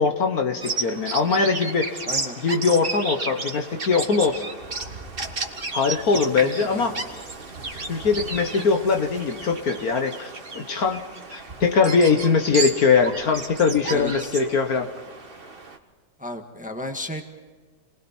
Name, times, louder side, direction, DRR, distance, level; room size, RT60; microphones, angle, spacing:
voice 1, 0.0-2.0 2.4-4.4 5.7-7.0 7.9-11.0 11.3-14.9, left 5 dB, 60° left, 5 dB, 1.7 m, -21 dB
Bird vocalization bird call bird song, 0.6-15.8, right 3 dB, 30° right, 1.8 m, -33 dB
voice 2, 2.1-2.4 6.4-7.0 13.9-14.3 16.2-17.2, left 1 dB, 5° right, 4 dB, 1.5 m, -33 dB
29.5 x 20.5 x 4.4 m, 1.4 s
omnidirectional pair, 1.9 m